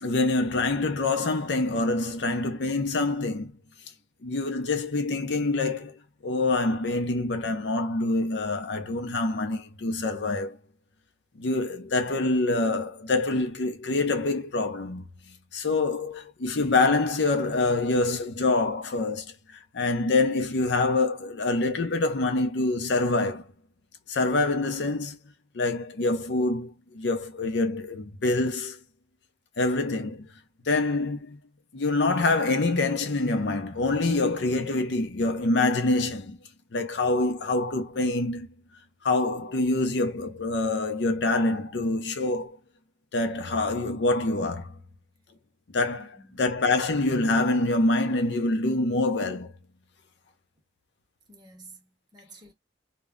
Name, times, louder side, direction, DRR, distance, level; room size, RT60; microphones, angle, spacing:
voice 1, 0.0-3.5 4.2-10.6 11.4-23.4 24.1-25.2 25.5-28.8 29.6-30.3 30.7-31.4 31.7-36.4 36.7-38.5 39.0-42.6 43.1-44.7 45.7-49.5, left 2 dB, 75° left, 0.6 m, -26 dB
voice 2, 46.0-46.5 51.3-52.5, right 2 dB, 25° right, 0.7 m, -51 dB
2.1 x 2.1 x 3.6 m
head